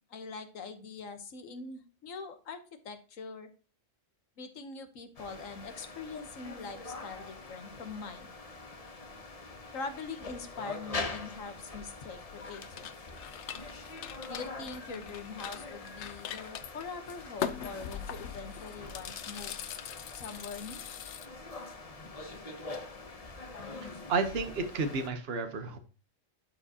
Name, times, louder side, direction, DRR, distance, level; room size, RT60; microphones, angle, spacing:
voice 1, 0.1-3.5 4.4-8.3 9.7-12.8 14.3-19.7 20.1-20.8, left 4 dB, 85° left, 8 dB, 1.5 m, -43 dB
sound 1, 5.2-25.1, left 3 dB, 35° left, 0.8 m, -44 dB
sound 2, 12.3-21.3, left 9 dB, 70° left, 0.9 m, -42 dB
voice 2, 24.1-25.8, right 4 dB, 55° right, 7 dB, 1.2 m, -31 dB
11.5 x 4.7 x 2.8 m, 0.35 s
omnidirectional pair, 1.3 m